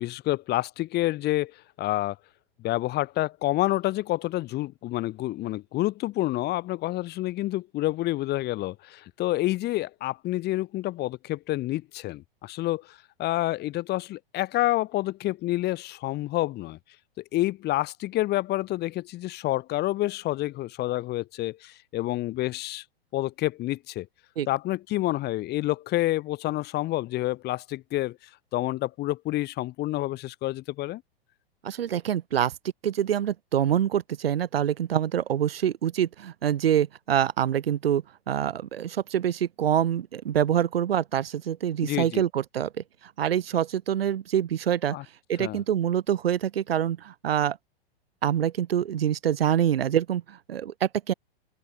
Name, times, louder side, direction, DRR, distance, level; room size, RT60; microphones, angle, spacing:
voice 1, 0.0-1.5 1.8-2.2 2.6-16.8 17.2-22.8 23.1-24.1 24.5-28.2 28.5-31.0 41.8-42.2 44.9-45.0 45.4-45.6, left 16 dB, 35° left, 2.3 m, -28 dB
voice 2, 31.6-32.5 32.8-42.7 43.2-45.0 45.3-47.6 48.2-51.1, right 10 dB, 70° right, 2.2 m, -25 dB
open air
hypercardioid pair, 110°, 30 cm